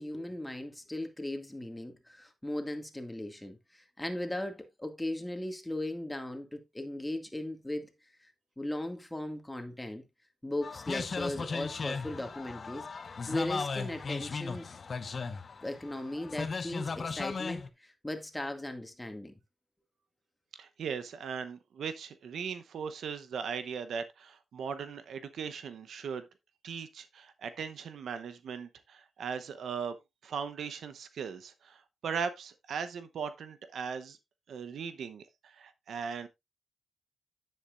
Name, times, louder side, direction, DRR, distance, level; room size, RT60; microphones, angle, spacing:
voice 1, 0.0-7.9 8.6-10.0 10.4-12.9 13.3-14.7 15.6-19.3, left 1 dB, 10° left, 2.0 m, -37 dB
sound 1, 10.6-17.7, left 4 dB, 50° left, 0.9 m, -37 dB
voice 2, 20.6-26.3 26.6-30.0 30.2-34.2 34.5-36.3, right 6 dB, 80° right, 0.8 m, -38 dB
9.9 x 7.8 x 2.5 m
cardioid pair, 75°, 0 cm